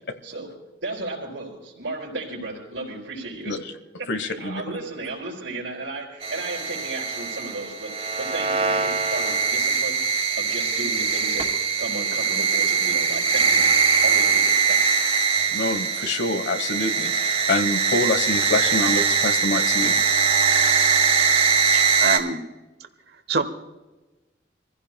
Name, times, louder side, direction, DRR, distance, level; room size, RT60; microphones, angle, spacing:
voice 1, 0.2-0.5 0.8-3.6 4.0-11.5 11.8-13.7 14.0-14.9, right 2 dB, 85° right, -4 dB, 4.4 m, -34 dB
voice 2, 4.1-4.6 15.5-19.9, left 2 dB, 75° left, 10 dB, 1.2 m, -26 dB
sound 1, 6.2-22.2, right 5 dB, 35° right, 2.2 m, -22 dB
voice 3, 21.7-22.4 23.3-23.4, right 3 dB, 60° right, 8 dB, 1.3 m, -25 dB
26.5 x 15.5 x 2.3 m, 1.1 s
head